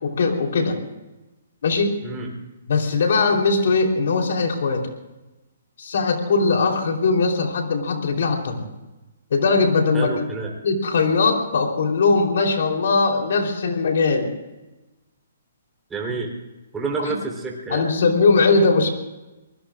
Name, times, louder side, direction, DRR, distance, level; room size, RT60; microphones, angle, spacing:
voice 1, 0.0-0.8 1.6-1.9 2.7-4.9 5.8-8.7 9.3-10.1 10.6-14.3 17.0-17.2 17.7-18.9, left 4 dB, 65° left, 2 dB, 3.8 m, -20 dB
voice 2, 9.9-10.5 15.9-16.3 16.7-17.9, right 4 dB, 10° right, -1 dB, 4.0 m, -28 dB
24.0 x 20.5 x 2.6 m, 1.1 s
hypercardioid pair, 140°, 0 cm